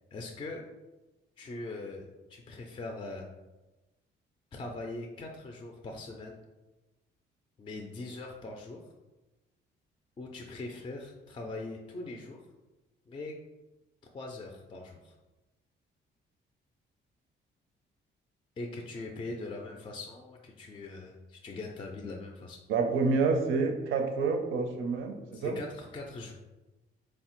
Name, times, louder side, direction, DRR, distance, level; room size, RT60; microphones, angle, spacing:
voice 1, 0.1-0.6 1.4-3.3 4.5-6.4 7.6-8.8 10.2-12.4 13.1-13.3 14.1-15.1 18.6-22.6 25.3-26.3, left 2 dB, 25° left, 1 dB, 0.3 m, -41 dB
voice 2, 22.7-25.6, right 4 dB, 80° right, 4 dB, 0.5 m, -28 dB
3.3 x 2.0 x 2.9 m, 1.1 s
cardioid pair, 90°, 20 cm